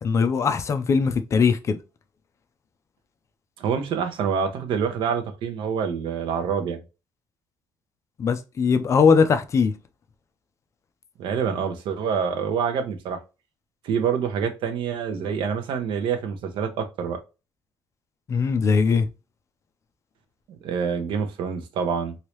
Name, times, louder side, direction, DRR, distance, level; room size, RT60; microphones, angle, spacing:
voice 1, 0.0-1.8 8.2-9.7 18.3-19.1, left 5 dB, 35° left, 0.4 m, -20 dB
voice 2, 3.6-6.8 11.2-13.2 13.8-17.2 20.5-22.1, right 7 dB, 70° right, 0.8 m, -26 dB
3.2 x 2.7 x 3.0 m
cardioid pair, 155°, 9 cm